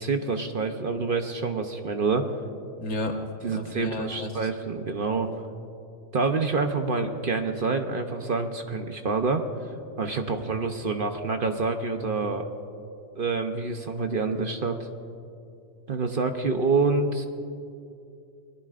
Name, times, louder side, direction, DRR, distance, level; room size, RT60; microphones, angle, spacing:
voice 1, 0.0-2.3 3.4-5.3 6.1-9.4 10.0-12.5 13.1-14.8 15.9-17.3, right 4 dB, 45° right, 5 dB, 0.9 m, -27 dB
voice 2, 2.8-3.2 3.5-4.5, left 1 dB, 70° left, 3 dB, 1.7 m, -32 dB
28.5 x 20.5 x 2.5 m, 2.6 s
omnidirectional pair, 1.4 m